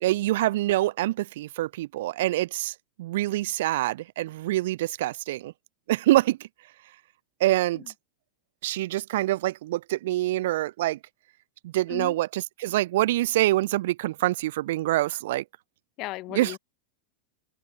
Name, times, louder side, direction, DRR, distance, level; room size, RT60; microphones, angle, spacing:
voice 1, 0.0-5.5 5.9-6.5 7.4-7.8 8.6-11.0 11.6-15.4 16.3-16.6, right 16 dB, 70° right, 0.5 m, -25 dB
voice 2, 16.0-16.6, left 19 dB, 45° left, 1.0 m, -36 dB
open air
hypercardioid pair, 110°, 0 cm